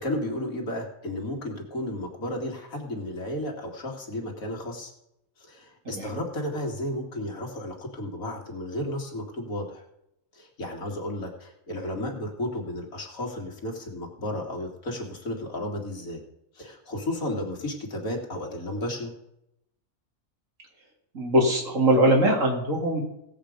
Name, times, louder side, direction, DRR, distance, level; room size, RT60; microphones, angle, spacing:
voice 1, 0.0-4.9 5.4-9.8 10.3-16.2 16.5-19.1, left 1 dB, 75° left, 1 dB, 2.7 m, -33 dB
voice 2, 21.1-23.0, right 1 dB, 65° right, 0 dB, 3.2 m, -21 dB
17.5 x 7.9 x 5.1 m, 0.82 s
omnidirectional pair, 1.5 m